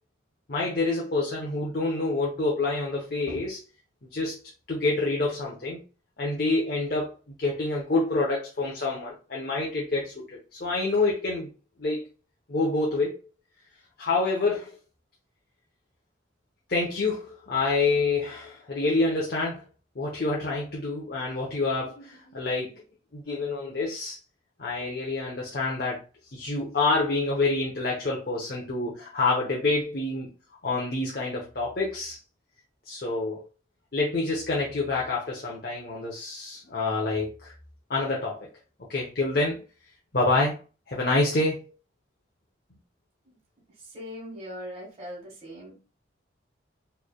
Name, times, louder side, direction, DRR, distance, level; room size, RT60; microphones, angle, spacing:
voice 1, 0.5-3.6 4.1-4.4 4.7-5.8 6.2-11.5 11.8-12.1 12.5-13.2 14.0-14.8 16.7-19.6 20.0-22.8 23.1-24.2 24.6-26.0 26.3-30.3 30.6-32.2 32.9-33.4 33.9-37.5 37.9-38.5 38.9-39.6 40.1-40.6 40.9-41.7, left 3 dB, 50° left, -3 dB, 0.8 m, -27 dB
voice 2, 43.9-45.7, equal, 30° right, -3 dB, 1.5 m, -40 dB
4.3 x 3.3 x 2.2 m, 0.33 s
head